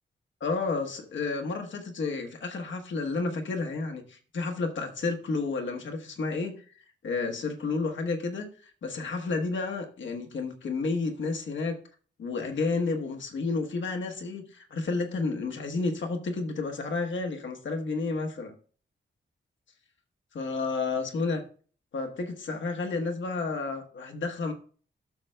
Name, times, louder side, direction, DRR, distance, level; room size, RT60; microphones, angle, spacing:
voice 1, 0.4-6.6 7.0-11.8 12.2-18.5 20.3-21.4 21.9-24.5, left 3 dB, 90° left, 4 dB, 1.1 m, -31 dB
12.0 x 6.5 x 2.2 m, 0.43 s
wide cardioid pair, 165°, 19 cm